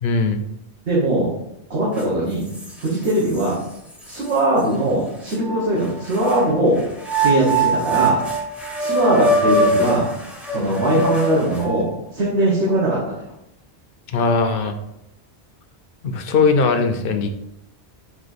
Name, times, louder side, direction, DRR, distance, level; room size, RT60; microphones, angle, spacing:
voice 1, 0.0-0.4 14.1-14.8 16.0-17.3, left 4 dB, 60° left, 7 dB, 0.7 m, -19 dB
voice 2, 0.9-1.3 1.7-2.4 2.8-3.6 4.1-6.8 7.2-8.2 8.8-10.1 10.5-13.1, right 1 dB, 80° right, -6 dB, 1.5 m, -20 dB
sound 1, 2.0-2.1 2.5-3.5 4.1-4.2 5.3-6.4 7.0-11.9, right 2 dB, ahead, 0.6 m, -22 dB
4.4 x 2.9 x 4.1 m, 0.81 s
omnidirectional pair, 1.1 m